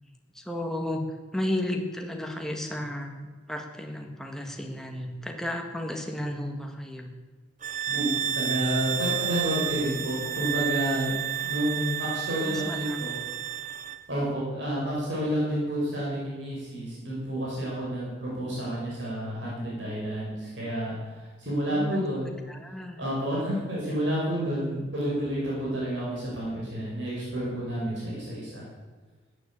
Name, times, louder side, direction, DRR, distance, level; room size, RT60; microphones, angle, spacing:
voice 1, 0.3-1.0 1.3-7.1 12.4-13.0 21.7-23.0, left 1 dB, ahead, 3 dB, 1.6 m, -33 dB
sound 1, 7.6-14.0, right 9 dB, 40° right, 0.6 m, -31 dB
voice 2, 8.4-11.1 11.4-13.1 14.1-22.3 23.0-28.6, equal, 65° right, -6 dB, 6.0 m, -30 dB
14.5 x 9.8 x 8.6 m, 1.4 s
head